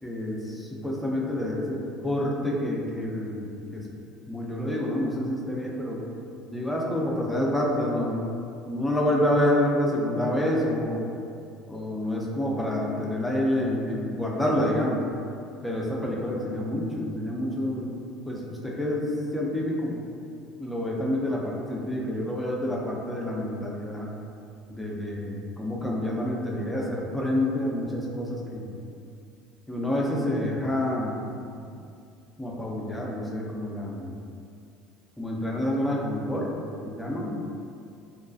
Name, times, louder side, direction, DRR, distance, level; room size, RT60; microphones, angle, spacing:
voice 1, 0.0-3.9 4.3-6.0 6.5-8.3 8.7-11.1 11.7-15.1 15.6-17.9 18.3-19.9 20.6-24.1 24.7-28.7 29.7-31.3 32.4-34.2 35.2-36.5 36.8-37.4, left 1 dB, 5° left, -3 dB, 0.5 m, -28 dB
2.3 x 2.2 x 2.5 m, 2.4 s
supercardioid pair, 85°, 0 cm